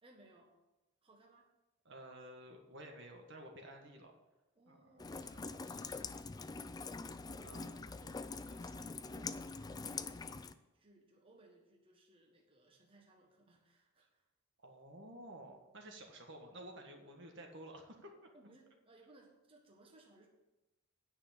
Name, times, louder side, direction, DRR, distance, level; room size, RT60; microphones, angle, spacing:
voice 1, 0.0-0.6 1.0-1.5 4.5-6.3 6.8-14.3 18.3-20.3, right 2 dB, 25° right, 0 dB, 1.5 m, -64 dB
voice 2, 1.9-4.1 4.7-5.4 5.6-6.0 7.4-7.7 14.6-18.3, right 1 dB, 60° right, 2 dB, 1.6 m, -53 dB
Rain, 5.0-10.5, left 4 dB, 20° left, 0.3 m, -44 dB
9.7 x 6.0 x 8.3 m, 1.0 s
head